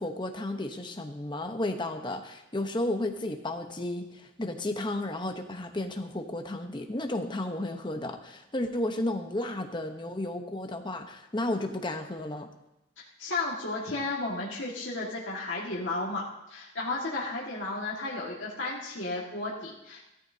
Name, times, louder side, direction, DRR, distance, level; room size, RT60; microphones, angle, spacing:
voice 1, 0.0-12.5, left 1 dB, 25° left, 5 dB, 0.9 m, -33 dB
voice 2, 13.0-16.2 16.5-20.0, left 2 dB, 70° left, -5 dB, 1.8 m, -33 dB
16.0 x 13.5 x 2.8 m, 0.92 s
head